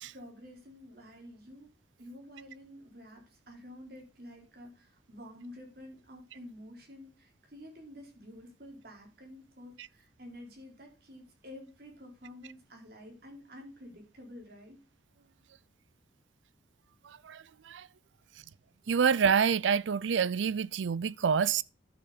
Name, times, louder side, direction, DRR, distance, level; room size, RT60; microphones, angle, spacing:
voice 1, 0.1-1.7 2.0-14.8, left 1 dB, 55° right, 3.7 m, -50 dB
voice 2, 17.0-17.9 18.9-21.6, right 6 dB, 85° right, 0.4 m, -27 dB
11.5 x 6.7 x 3.9 m
head